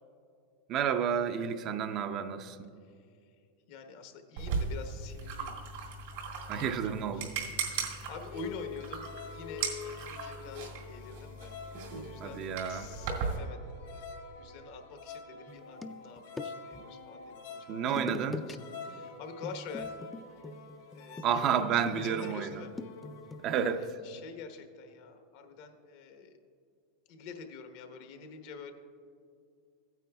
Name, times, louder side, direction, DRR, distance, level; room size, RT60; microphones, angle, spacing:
voice 1, 0.7-2.7 6.5-7.3 12.2-12.9 17.7-18.4 21.2-22.5 23.4-23.9, right 8 dB, 45° right, 0.5 m, -30 dB
voice 2, 2.8-3.4 3.7-5.6 6.5-11.6 11.9-19.9 20.9-21.5 21.8-22.8 23.5-26.4 27.1-28.7, left 4 dB, 65° left, 1.0 m, -47 dB
sound 1, 4.4-13.4, right 5 dB, 80° right, 2.1 m, -38 dB
sound 2, 8.3-23.7, left 5 dB, 85° left, 1.4 m, -47 dB
sound 3, 15.5-16.9 17.9-18.6 18.9-19.1 19.4-23.5, left 2 dB, 15° left, 0.4 m, -43 dB
15.5 x 9.2 x 2.3 m
supercardioid pair, 125°, 0 cm